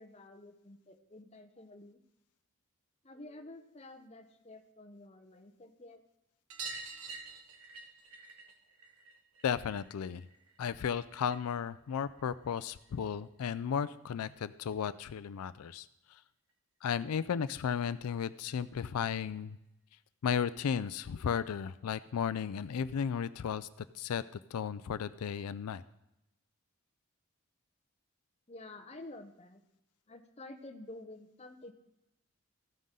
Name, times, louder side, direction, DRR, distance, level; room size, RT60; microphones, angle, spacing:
voice 1, 0.0-2.0 3.0-6.0 28.5-29.6 30.1-31.7, left 2 dB, 30° left, 6 dB, 0.8 m, -50 dB
sound 1, 6.5-11.6 11.9-13.0 14.4-14.5 14.7-14.8 15.1-15.2 16.5-16.6 16.9-17.0 17.3-17.4 18.6-18.7 19.5-19.6, right 4 dB, 80° right, 1.3 m, -48 dB
voice 2, 9.4-10.3 10.6-16.2 16.8-19.6 20.2-23.7 23.9-24.2 24.5-25.8, left 7 dB, 90° left, 14 dB, 0.4 m, -34 dB
14.5 x 9.3 x 3.8 m, 0.88 s
head